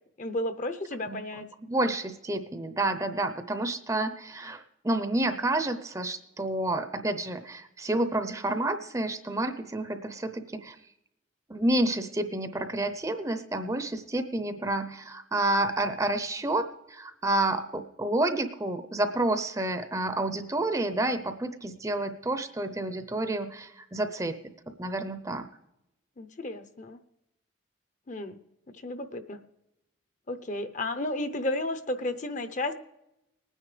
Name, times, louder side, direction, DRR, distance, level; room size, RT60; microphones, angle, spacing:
voice 1, 0.2-1.5 26.2-27.0 28.1-28.4 28.8-29.4 30.3-32.7, left 1 dB, 40° left, 10 dB, 0.7 m, -32 dB
voice 2, 1.1-10.8 11.5-24.3 24.8-25.5, right 2 dB, 15° right, 9 dB, 0.6 m, -29 dB
19.5 x 9.8 x 3.3 m, 0.87 s
head